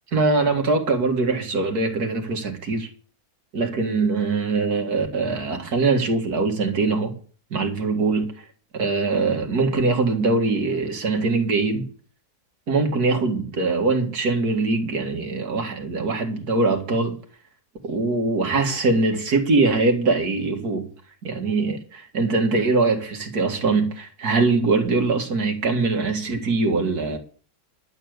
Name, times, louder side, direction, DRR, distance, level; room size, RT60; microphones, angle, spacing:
voice 1, 0.1-2.9 3.5-7.1 7.5-8.3 8.7-11.9 12.7-17.1 17.8-20.9 21.2-27.2, right 3 dB, 90° right, 2.5 m, -22 dB
11.5 x 7.0 x 8.0 m
omnidirectional pair, 1.6 m